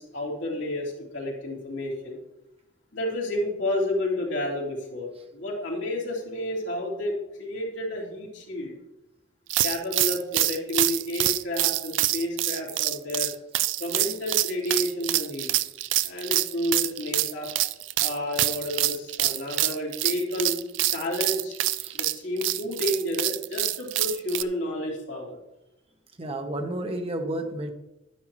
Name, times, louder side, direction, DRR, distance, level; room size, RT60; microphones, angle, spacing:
voice 1, 0.0-2.2 2.9-8.8 9.6-13.3 13.8-15.5 16.0-17.5 18.0-20.6 20.9-21.6 21.9-25.4, left 1 dB, 80° left, -3 dB, 3.1 m, -30 dB
sound 1, 9.5-24.4, right 16 dB, 75° right, 0.4 m, -26 dB
voice 2, 26.2-27.7, right 1 dB, 30° right, 5 dB, 0.9 m, -31 dB
11.0 x 9.8 x 3.0 m, 0.91 s
head